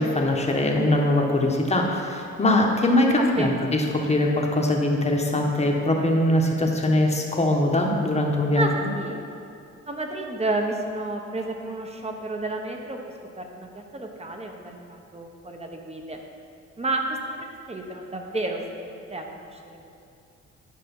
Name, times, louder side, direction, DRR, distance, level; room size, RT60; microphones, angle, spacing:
voice 1, 0.0-8.7, left 1 dB, 20° left, 1 dB, 1.3 m, -22 dB
voice 2, 0.7-1.0 3.2-3.8 8.5-9.2 9.9-13.0 13.4-16.2 16.8-17.0 17.4-19.8, right 2 dB, 20° right, 2 dB, 1.2 m, -31 dB
10.5 x 5.3 x 5.5 m, 2.5 s
cardioid pair, 90°, 30 cm